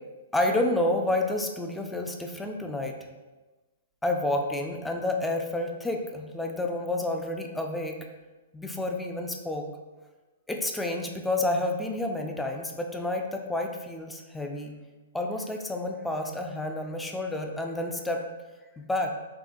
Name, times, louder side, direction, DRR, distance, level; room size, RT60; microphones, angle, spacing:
voice 1, 0.3-3.0 4.0-8.0 8.5-9.7 10.5-14.8 15.1-18.2 18.8-19.1, left 1 dB, 5° left, 3 dB, 0.3 m, -29 dB
3.6 x 2.9 x 2.6 m, 1.2 s
hypercardioid pair, 140°, 0 cm